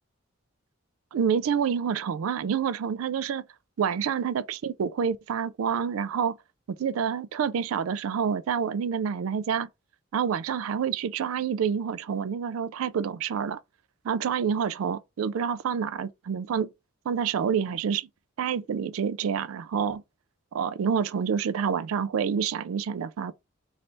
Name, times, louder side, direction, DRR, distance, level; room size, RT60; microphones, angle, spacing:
voice 1, 1.1-3.4 3.8-6.4 6.8-9.7 10.1-13.6 14.0-16.7 17.1-18.1 18.4-20.0 20.5-23.3, right 7 dB, 90° right, 0.4 m, -28 dB
3.2 x 2.6 x 4.2 m
head